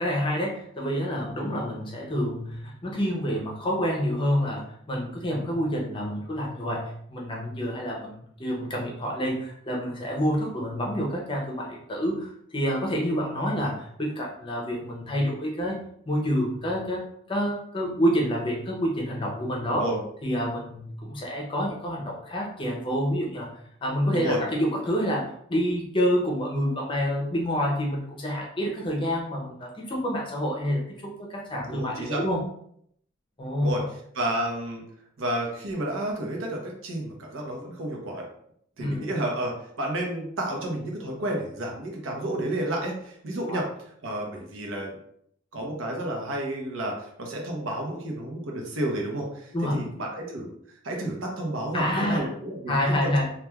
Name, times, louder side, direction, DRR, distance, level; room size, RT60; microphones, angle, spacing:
voice 1, 0.0-19.9 20.2-23.5 23.8-32.4 33.4-33.8 38.8-39.0 43.5-43.7 49.5-49.8 51.7-52.3 52.7-53.3, equal, 25° left, -1 dB, 0.6 m, -28 dB
voice 2, 31.7-32.2 33.6-33.8 34.1-34.8 35.2-38.3 38.8-43.7 44.0-44.9 45.5-53.1, right 1 dB, 80° right, 0 dB, 0.8 m, -31 dB
3.1 x 2.3 x 2.3 m, 0.68 s
head